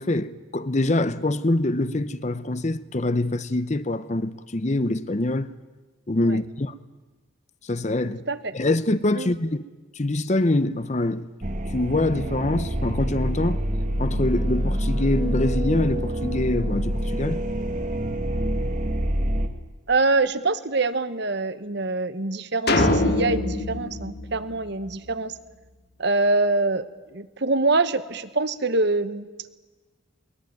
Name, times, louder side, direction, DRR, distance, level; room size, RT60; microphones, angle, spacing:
voice 1, 0.0-5.5 6.1-6.7 7.7-8.2 8.5-9.6 10.0-11.3 11.7-13.6 14.0-17.4, left 2 dB, 35° left, 0.7 m, -24 dB
voice 2, 8.0-8.5 9.1-9.3 19.9-25.3 26.0-29.3, right 3 dB, 55° right, 1.1 m, -25 dB
sound 1, 11.4-19.5, equal, 35° right, 1.5 m, -26 dB
sound 2, 22.7-25.1, left 1 dB, 50° left, 2.1 m, -24 dB
22.5 x 20.5 x 9.3 m
head